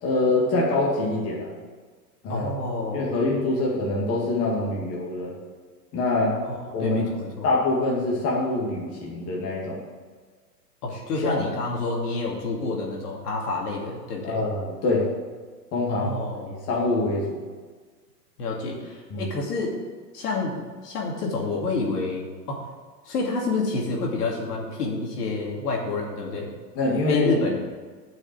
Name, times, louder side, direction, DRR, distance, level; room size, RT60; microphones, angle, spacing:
voice 1, 0.0-1.5 2.2-2.5 2.9-5.4 5.9-6.4 6.7-7.1 7.4-9.8 11.2-11.4 14.2-15.1 15.7-16.2 16.5-17.4 19.1-19.3 26.8-27.4, left 2 dB, 30° left, -4 dB, 2.3 m, -25 dB
voice 2, 2.3-3.1 3.5-3.6 6.4-7.5 10.8-14.4 15.9-16.6 18.4-19.8 20.1-22.7 23.0-26.5 27.1-27.6, left 3 dB, 65° left, -1 dB, 2.8 m, -28 dB
8.7 x 6.3 x 7.7 m, 1.5 s
hypercardioid pair, 130°, 50 cm